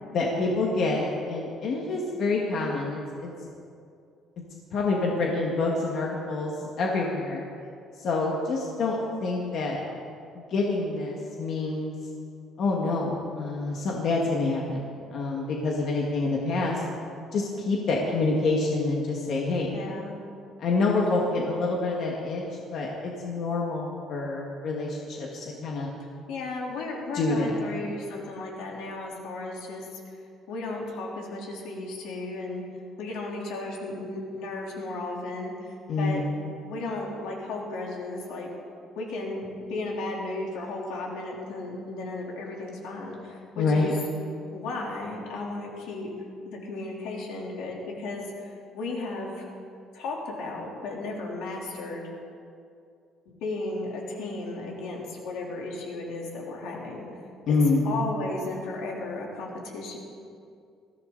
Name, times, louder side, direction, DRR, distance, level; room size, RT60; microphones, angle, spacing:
voice 1, 0.1-3.3 4.7-7.4 8.0-9.8 10.4-11.9 12.6-14.8 15.1-16.8 17.3-19.7 20.6-22.4 22.7-25.9 27.1-27.6 35.9-36.2 43.6-43.9 57.5-57.9, left 3 dB, 45° left, -2 dB, 1.7 m, -27 dB
voice 2, 19.7-20.1 26.3-30.0 30.5-32.6 33.0-36.2 36.6-38.5 39.0-44.0 44.5-46.1 46.4-49.5 49.9-52.1 53.3-57.1 57.5-57.6 57.8-60.0, left 2 dB, 75° left, -2 dB, 3.4 m, -35 dB
20.5 x 15.0 x 4.0 m, 2.4 s
cardioid pair, 175°, 0 cm